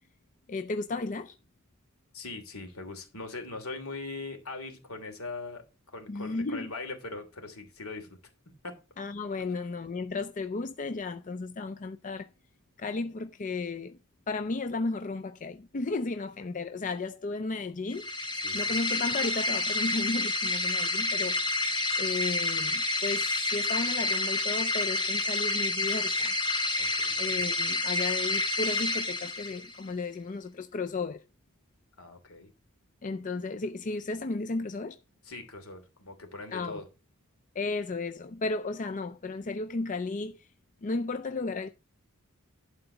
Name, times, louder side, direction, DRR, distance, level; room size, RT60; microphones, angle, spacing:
voice 1, 0.5-1.3 6.1-6.7 9.0-12.3 12.8-14.0 14.3-18.1 18.5-21.4 22.0-26.3 27.2-31.2 33.0-35.0 36.5-36.8 37.5-40.5 40.8-41.7, left 3 dB, 35° left, 0.5 m, -34 dB
voice 2, 2.1-5.6 5.9-8.2 8.6-8.7 18.3-18.7 26.8-27.2 32.0-32.5 35.2-36.9, left 3 dB, 70° left, 2.9 m, -41 dB
sound 1, 17.9-29.8, left 2 dB, 20° left, 1.7 m, -29 dB
11.5 x 4.0 x 7.9 m
head